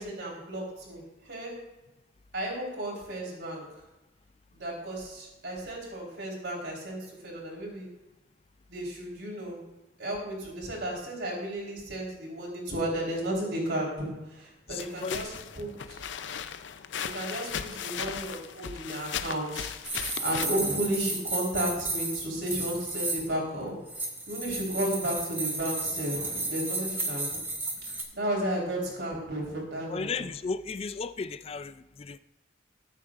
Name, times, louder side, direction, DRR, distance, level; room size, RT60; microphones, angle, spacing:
voice 1, 0.0-1.5 2.3-3.6 4.5-7.9 8.7-9.6 10.0-16.0 17.0-23.8 24.3-27.4 28.1-30.2, right 1 dB, 65° right, -2 dB, 4.0 m, -33 dB
voice 2, 14.7-15.3 29.9-32.2, left 4 dB, 30° left, 14 dB, 0.3 m, -35 dB
sound 1, 14.8-20.5, left 8 dB, 80° left, 0.5 m, -37 dB
sound 2, 19.8-23.3 23.9-28.0, right 2 dB, 10° right, 1.4 m, -33 dB
20.0 x 8.3 x 2.5 m, 1.0 s
head